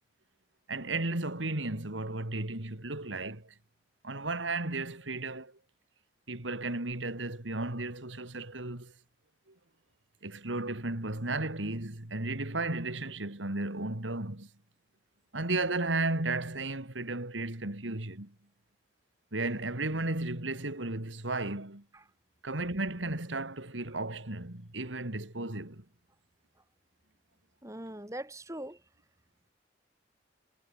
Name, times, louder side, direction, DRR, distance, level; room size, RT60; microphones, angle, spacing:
voice 1, 0.7-3.5 4.0-5.5 6.3-8.9 10.2-14.5 15.3-18.3 19.3-21.8 22.4-25.8, right 2 dB, 85° right, 3.0 m, -34 dB
voice 2, 27.6-28.8, right 1 dB, 15° right, 2.9 m, -41 dB
head